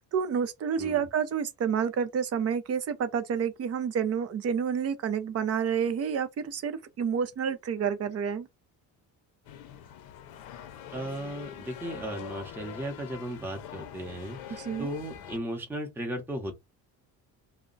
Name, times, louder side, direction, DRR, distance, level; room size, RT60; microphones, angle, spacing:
voice 1, 0.0-8.5 14.5-14.9, right 7 dB, 40° right, 0.6 m, -29 dB
sound 1, 9.4-15.4, left 10 dB, 70° left, 0.6 m, -44 dB
voice 2, 10.9-16.5, right 1 dB, 5° right, 0.9 m, -36 dB
2.3 x 2.1 x 3.8 m
cardioid pair, 120°, 37 cm